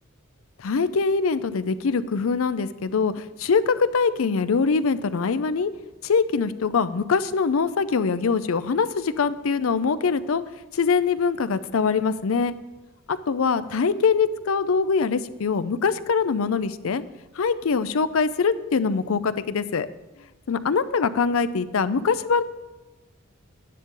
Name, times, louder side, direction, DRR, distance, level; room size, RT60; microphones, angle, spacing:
voice 1, 0.6-5.7 6.0-10.4 10.7-12.5 13.1-17.0 17.4-19.9 20.5-22.4, left 5 dB, 70° left, 14 dB, 0.5 m, -23 dB
11.0 x 9.9 x 3.8 m, 1.1 s
head